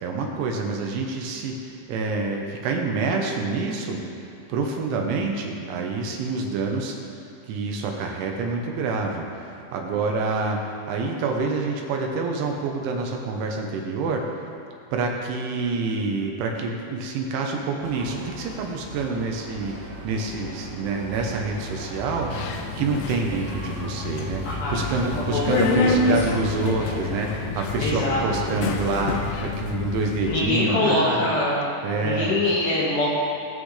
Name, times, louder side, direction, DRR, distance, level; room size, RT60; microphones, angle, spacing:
voice 1, 0.0-4.0 4.5-7.0 7.5-14.2 14.9-19.7 20.0-24.4 24.7-31.3 31.8-32.4, right 3 dB, 75° right, 1 dB, 3.3 m, -27 dB
sound 1, 17.8-27.4, right 1 dB, 55° right, 3.7 m, -38 dB
Subway metro underground, 22.3-30.4, left 3 dB, 85° left, 2.6 m, -28 dB
voice 2, 24.4-25.9 27.8-28.5 30.2-31.7 32.0-33.1, left 2 dB, 55° left, -7 dB, 3.2 m, -24 dB
21.5 x 7.7 x 3.3 m, 2.7 s
omnidirectional pair, 5.7 m